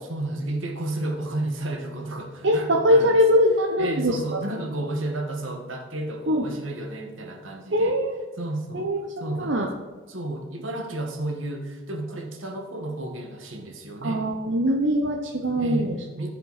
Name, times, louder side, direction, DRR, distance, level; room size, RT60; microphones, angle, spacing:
voice 1, 0.0-3.2 3.8-8.0 8.4-8.9 9.2-9.6 10.1-14.2 15.6-16.3, right 2 dB, 90° right, 2 dB, 1.6 m, -32 dB
voice 2, 2.4-4.4 6.3-6.5 7.7-8.2 8.7-9.7 14.0-15.9, equal, 65° right, 1 dB, 0.9 m, -22 dB
15.0 x 5.5 x 4.1 m, 1.3 s
head